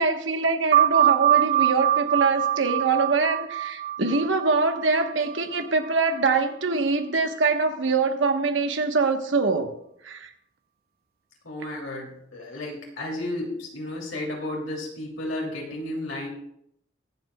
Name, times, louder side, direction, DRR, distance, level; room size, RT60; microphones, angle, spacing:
voice 1, 0.0-9.7 10.0-10.3, right 4 dB, 70° right, 6 dB, 1.2 m, -24 dB
sound 1, 0.7-5.9, right 12 dB, 50° right, 0.5 m, -23 dB
voice 2, 11.4-16.3, left 1 dB, 90° left, -2 dB, 2.9 m, -33 dB
23.0 x 7.6 x 2.3 m, 0.74 s
head